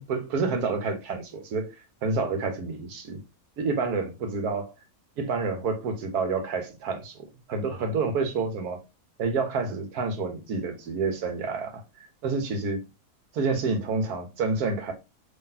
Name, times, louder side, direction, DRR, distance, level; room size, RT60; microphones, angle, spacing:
voice 1, 0.0-3.2 3.6-4.7 5.2-7.2 7.5-8.8 9.2-11.8 12.2-12.8 13.3-14.9, right 4 dB, 80° right, 1.4 m, -28 dB
3.9 x 3.2 x 2.6 m
omnidirectional pair, 1.6 m